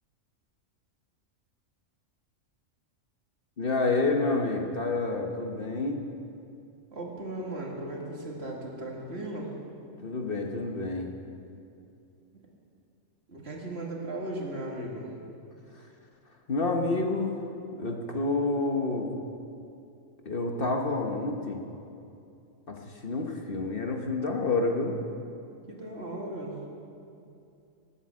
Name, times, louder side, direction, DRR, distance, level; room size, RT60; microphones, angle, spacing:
voice 1, 3.6-6.0 10.0-11.1 16.5-17.3 17.7-19.1 20.2-21.6 22.7-24.9, left 3 dB, 45° left, 2 dB, 1.3 m, -28 dB
voice 2, 6.9-9.5 13.3-15.1 25.7-26.6, right 1 dB, 50° right, -1 dB, 2.4 m, -36 dB
19.0 x 8.7 x 7.6 m, 2.6 s
omnidirectional pair, 1.3 m